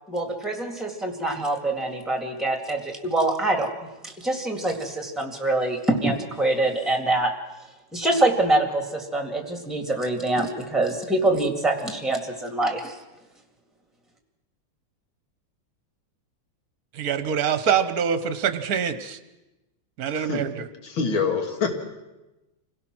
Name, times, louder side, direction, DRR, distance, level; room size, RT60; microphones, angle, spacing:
voice 1, 0.1-3.7 4.0-7.3 7.9-13.0, right 2 dB, ahead, 5 dB, 2.0 m, -25 dB
voice 2, 16.9-19.2 20.0-20.7, right 7 dB, 55° right, 11 dB, 1.3 m, -25 dB
voice 3, 20.1-20.5 20.8-21.7, left 5 dB, 85° left, 5 dB, 2.8 m, -25 dB
26.0 x 17.0 x 6.1 m, 1.0 s
omnidirectional pair, 2.2 m